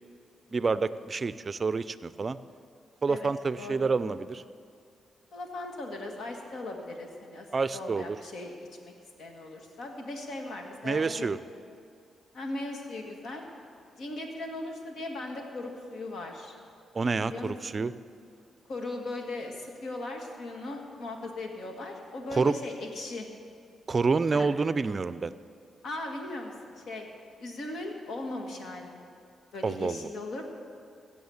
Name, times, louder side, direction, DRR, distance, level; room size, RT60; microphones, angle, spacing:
voice 1, 0.5-2.4 3.0-4.4 7.5-8.2 10.8-11.4 16.9-17.9 22.3-22.5 23.9-25.3 29.6-30.1, right 4 dB, 35° right, 15 dB, 0.4 m, -28 dB
voice 2, 3.1-3.9 5.3-7.5 7.7-8.9 9.2-11.3 12.3-13.4 14.0-16.5 17.2-17.8 18.7-23.3 24.3-24.5 25.8-27.1 27.4-29.1 29.5-30.4, left 2 dB, 70° left, 2 dB, 1.8 m, -38 dB
16.0 x 7.3 x 7.1 m, 2.3 s
cardioid pair, 85°, 0 cm